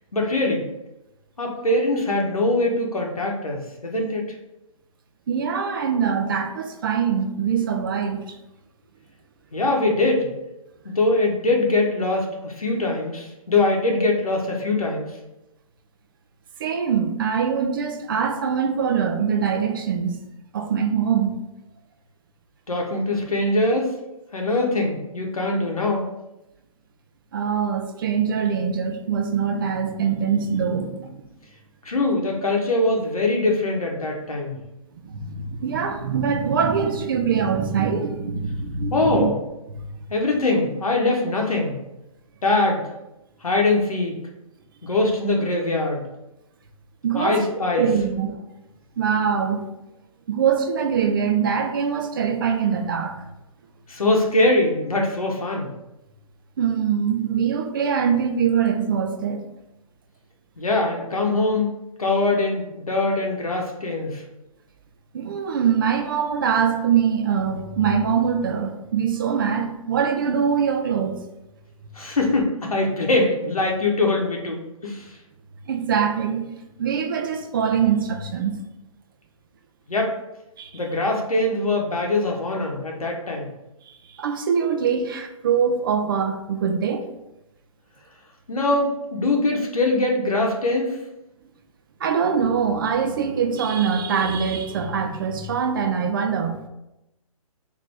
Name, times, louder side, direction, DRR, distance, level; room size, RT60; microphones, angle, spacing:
voice 1, 0.1-0.7 1.4-4.3 9.5-10.3 10.8-15.2 22.7-24.0 24.3-26.1 31.8-34.6 38.9-39.4 40.1-41.8 42.4-42.9 43.4-44.2 44.8-46.1 47.1-47.9 53.9-55.7 60.6-61.7 62.0-64.2 71.9-75.2 79.9-80.1 80.7-83.5 88.5-91.0, left 2 dB, 85° left, 0.8 m, -22 dB
voice 2, 5.3-8.4 16.6-20.2 20.5-21.4 27.3-31.2 35.0-39.3 47.0-48.4 49.0-49.7 50.3-53.2 56.6-59.4 65.1-71.2 75.7-76.5 76.8-78.6 80.6-80.7 83.9-87.0 92.0-96.7, right 7 dB, 40° right, 0.4 m, -23 dB
4.1 x 2.6 x 3.3 m
figure-of-eight pair, 135°, 18 cm